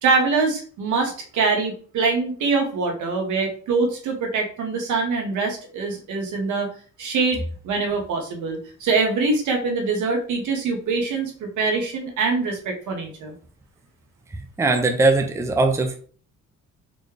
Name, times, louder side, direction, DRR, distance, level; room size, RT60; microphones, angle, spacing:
voice 1, 0.0-6.7 7.0-13.3, right 4 dB, 75° right, 2 dB, 1.2 m, -24 dB
voice 2, 14.6-16.0, right 3 dB, 10° right, 5 dB, 0.5 m, -20 dB
4.2 x 2.2 x 3.2 m, 0.43 s
cardioid pair, 90°, 30 cm